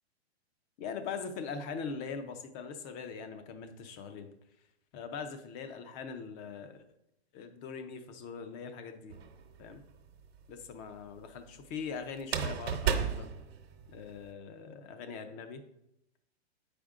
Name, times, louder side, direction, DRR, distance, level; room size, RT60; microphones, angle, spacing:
voice 1, 0.8-4.3 4.9-6.8 7.3-9.2 9.6-9.8 10.5-13.3 13.9-15.6, left 5 dB, 25° left, 8 dB, 0.5 m, -41 dB
sound 1, 9.1-9.8 12.2-14.2, right 7 dB, 65° right, 1.0 m, -33 dB
7.7 x 5.1 x 3.6 m, 0.83 s
hypercardioid pair, 140°, 33 cm